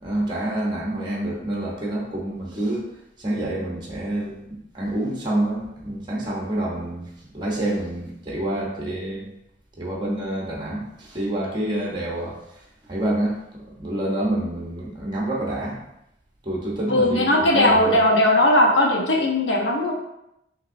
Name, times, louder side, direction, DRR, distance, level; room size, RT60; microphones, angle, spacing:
voice 1, 0.0-2.8 3.2-9.3 9.8-12.4 12.9-13.4 13.7-15.8 16.4-17.9, right 1 dB, 25° right, -3 dB, 0.9 m, -27 dB
voice 2, 16.9-19.9, left 1 dB, 75° left, 0 dB, 0.9 m, -18 dB
6.2 x 2.8 x 2.6 m, 0.83 s
head